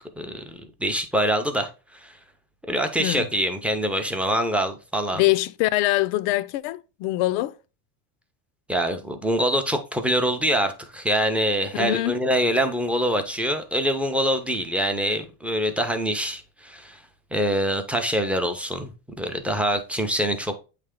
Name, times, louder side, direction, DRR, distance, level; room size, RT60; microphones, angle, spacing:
voice 1, 0.2-2.2 2.7-5.2 8.7-17.0 17.3-20.6, equal, 5° right, 0.5 m, -25 dB
voice 2, 5.1-7.6 11.7-12.2, left 18 dB, 65° left, 0.5 m, -23 dB
8.2 x 3.3 x 3.6 m
cardioid pair, 140°, 45 cm